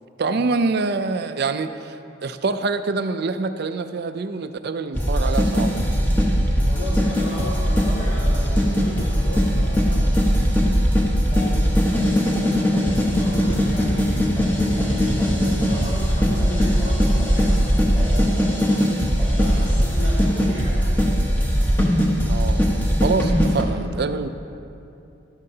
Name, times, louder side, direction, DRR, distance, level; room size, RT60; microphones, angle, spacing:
voice 1, 0.2-5.8 22.3-22.7 23.0-24.3, right 4 dB, 55° right, 10 dB, 0.4 m, -25 dB
sound 1, 4.9-23.6, equal, 10° left, 1.1 m, -20 dB
voice 2, 6.7-10.4 11.3-12.5 13.0-18.6 19.3-20.9, left 1 dB, 45° left, -7 dB, 1.9 m, -34 dB
12.0 x 12.0 x 2.8 m, 2.7 s
head